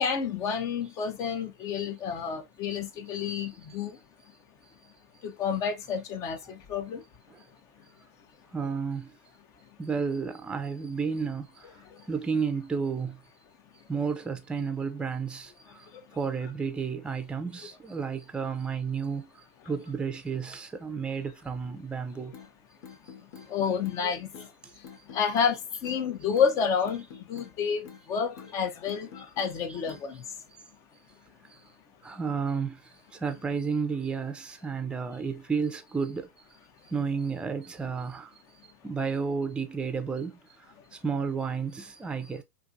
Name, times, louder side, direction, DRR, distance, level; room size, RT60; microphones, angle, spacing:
voice 1, 0.0-4.0 5.2-7.0 11.9-12.0 15.9-16.0 23.5-24.5 24.8-30.2, left 6 dB, 40° left, 0.6 m, -30 dB
voice 2, 8.5-9.1 9.8-11.5 12.1-13.1 13.9-15.5 16.2-19.3 19.7-22.3 29.7-29.8 32.0-32.8 33.2-36.3 36.9-38.3 38.8-40.4 41.0-42.4, right 5 dB, 10° right, 0.5 m, -31 dB
sound 1, 22.3-22.5 22.8-23.5 23.8-24.0 24.3-24.5 24.8-25.5 25.8-26.0 26.3-26.5 26.8-27.5 27.8-28.0 28.4-28.5 28.9-29.5 29.9-30.1, left 6 dB, 65° left, 1.0 m, -47 dB
2.6 x 2.5 x 2.5 m
hypercardioid pair, 110°, 8 cm